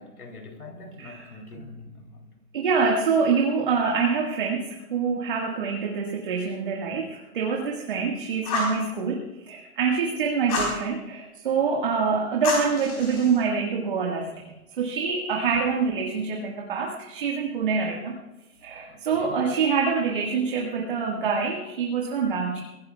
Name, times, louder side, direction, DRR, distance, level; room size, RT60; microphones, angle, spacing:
voice 1, 0.0-2.3 18.9-19.4, left 2 dB, 85° left, 3.1 m, -43 dB
voice 2, 1.0-1.4 2.5-18.2 18.6-22.6, right 5 dB, 35° right, 1.7 m, -26 dB
Fire, 8.4-8.8 10.5-10.8 12.4-13.4, left 2 dB, 25° left, 3.9 m, -28 dB
24.0 x 16.0 x 2.3 m
hypercardioid pair, 165°, 43 cm